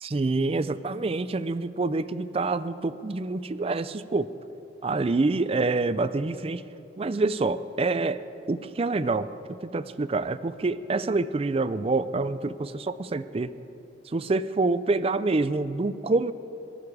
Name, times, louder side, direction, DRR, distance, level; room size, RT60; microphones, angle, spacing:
voice 1, 0.0-4.3 4.8-6.6 7.0-8.2 8.5-9.3 9.6-13.5 14.1-16.3, right 3 dB, 30° right, 13 dB, 0.4 m, -26 dB
19.0 x 12.5 x 4.9 m, 3.0 s
head